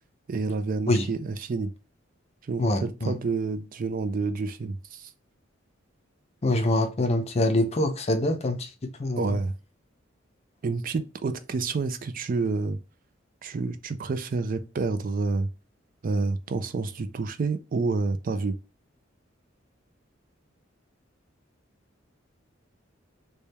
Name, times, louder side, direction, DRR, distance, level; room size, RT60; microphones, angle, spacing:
voice 1, 0.3-1.7 2.5-5.1 9.2-9.5 10.6-12.8 13.4-15.5 16.0-18.5, right 3 dB, 45° right, 0.4 m, -29 dB
voice 2, 2.6-3.1 6.4-9.2, left 1 dB, 30° left, 0.5 m, -25 dB
3.4 x 2.3 x 4.1 m
head